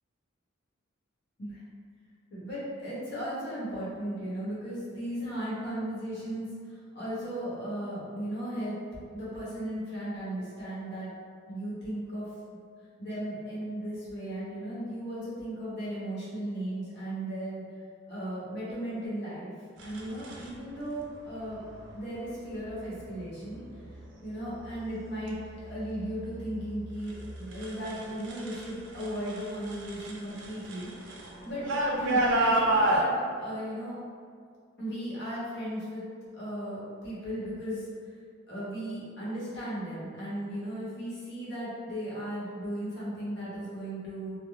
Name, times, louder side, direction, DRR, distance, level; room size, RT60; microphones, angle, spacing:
voice 1, 2.3-8.8 9.1-11.1 11.5-12.3 13.0-17.6 18.1-19.5 19.8-21.6 21.9-23.6 24.2-30.9 31.4-31.7 31.9-34.0 34.8-36.0 36.3-37.9 38.5-44.4, right 1 dB, 60° left, -9 dB, 1.0 m, -36 dB
sound 1, 19.8-20.5 21.6-22.0 22.5-23.0 23.5-24.1 24.4-28.7 29.0-33.0, right 1 dB, 65° right, 0.4 m, -31 dB
3.0 x 2.1 x 2.4 m, 2.2 s
head